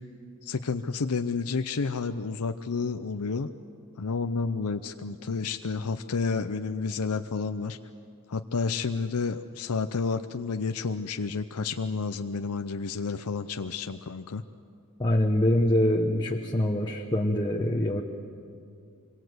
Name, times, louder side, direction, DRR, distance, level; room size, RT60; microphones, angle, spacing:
voice 1, 0.4-3.5 4.0-7.8 8.3-14.4, left 4 dB, 80° left, 8 dB, 0.7 m, -30 dB
voice 2, 15.0-18.0, left 1 dB, 20° left, 0 dB, 1.2 m, -24 dB
26.0 x 22.5 x 8.0 m, 2.4 s
head